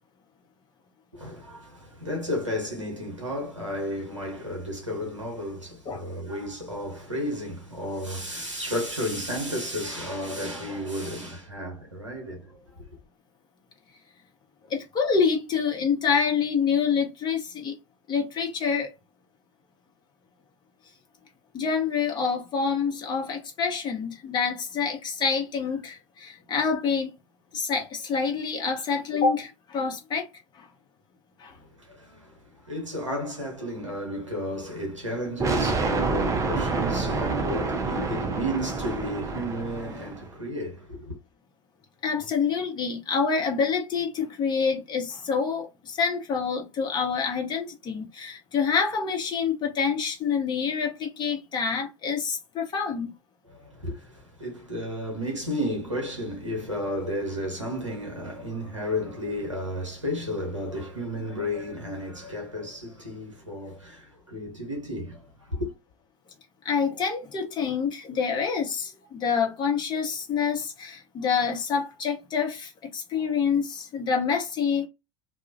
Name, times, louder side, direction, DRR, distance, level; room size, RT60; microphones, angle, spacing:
voice 1, 1.1-12.8 31.8-41.2 53.4-65.7, equal, 90° right, 0.8 m, -33 dB
voice 2, 14.7-17.7 18.1-18.9 21.5-27.1 27.5-30.3 30.5-30.7 31.4-31.5 38.0-38.1 42.0-53.1 66.6-74.9, left 6 dB, 30° left, 0.8 m, -27 dB
sound 1, 35.4-40.3, right 3 dB, 20° right, 0.5 m, -28 dB
2.3 x 2.1 x 2.5 m
figure-of-eight pair, 75°, 15 cm